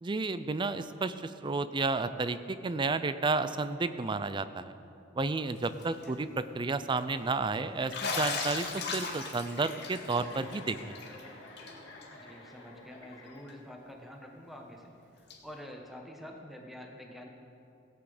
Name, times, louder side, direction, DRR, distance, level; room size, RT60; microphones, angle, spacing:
voice 1, 0.0-4.7 5.2-11.0, right 3 dB, 25° right, 12 dB, 0.4 m, -32 dB
Bathtub (filling or washing), 5.6-6.0 6.4-6.5 7.9-11.2 11.6-11.7 12.0-12.1 13.5-13.6 15.3-15.4, left 4 dB, 60° left, 1.9 m, -36 dB
Chuckle chortle, 9.8-13.8, left 2 dB, 90° left, 1.9 m, -50 dB
voice 2, 12.1-17.3, equal, ahead, 1 dB, 1.1 m, -48 dB
17.5 x 8.3 x 5.0 m, 2.7 s
head